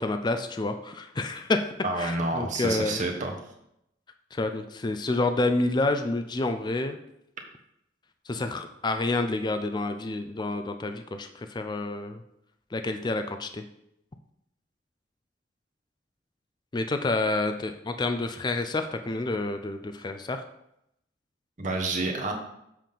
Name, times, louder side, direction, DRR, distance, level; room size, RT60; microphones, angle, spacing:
voice 1, 0.0-3.0 4.3-7.0 8.3-12.2 12.7-13.6 16.7-20.4, left 2 dB, 25° left, 7 dB, 0.4 m, -29 dB
voice 2, 1.8-3.3 21.6-22.3, right 2 dB, 40° right, 2 dB, 1.2 m, -28 dB
7.4 x 3.6 x 5.7 m, 0.79 s
head